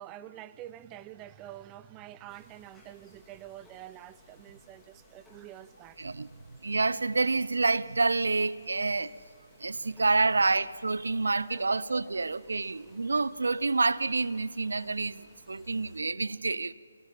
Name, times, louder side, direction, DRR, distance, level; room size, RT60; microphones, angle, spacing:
voice 1, 0.0-6.0 9.9-10.0 11.5-11.8 12.1-12.2 12.5-12.7, right 12 dB, 15° right, 0.5 m, -47 dB
sound 1, 2.3-16.0, left 1 dB, 5° left, 2.3 m, -60 dB
voice 2, 6.0-6.3 6.6-9.1 9.6-16.7, right 3 dB, 65° right, 0.6 m, -28 dB
25.0 x 18.0 x 7.4 m
figure-of-eight pair, 145°, 0 cm